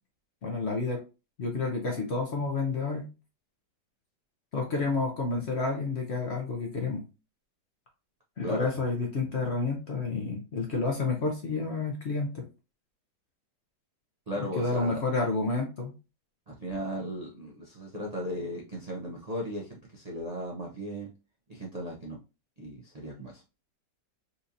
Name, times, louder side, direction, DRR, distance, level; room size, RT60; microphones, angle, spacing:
voice 1, 0.4-1.0 1.4-3.1 4.5-7.0 8.4-12.4 14.6-15.9, left 3 dB, 55° left, 1 dB, 0.8 m, -30 dB
voice 2, 14.3-15.0 16.5-21.1 21.5-22.2 22.6-23.4, equal, 55° right, -2 dB, 0.4 m, -36 dB
4.2 x 2.7 x 2.5 m, 0.30 s
omnidirectional pair, 1.9 m